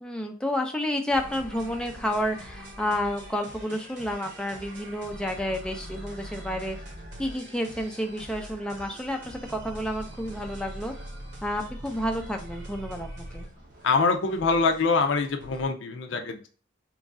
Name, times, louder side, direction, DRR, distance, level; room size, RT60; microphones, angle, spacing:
voice 1, 0.0-6.8 7.2-10.9 11.4-13.5, left 1 dB, 5° left, 3 dB, 0.4 m, -30 dB
sound 1, 1.1-15.7, equal, 60° right, 1.1 m, -43 dB
voice 2, 13.8-16.5, left 4 dB, 70° left, 6 dB, 0.5 m, -24 dB
3.1 x 2.5 x 3.6 m, 0.40 s
head